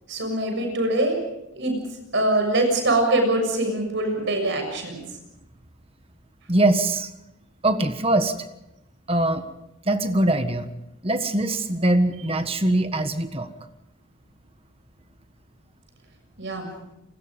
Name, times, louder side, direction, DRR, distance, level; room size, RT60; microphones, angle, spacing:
voice 1, 0.1-1.2 1.5-1.7 2.1-5.0 16.4-16.7, right 2 dB, 55° right, 4 dB, 7.0 m, -23 dB
voice 2, 6.5-7.1 7.6-8.4 9.1-9.5 9.8-10.7 11.0-13.5, right 1 dB, 25° right, 8 dB, 1.5 m, -22 dB
30.0 x 20.5 x 5.2 m, 0.87 s
head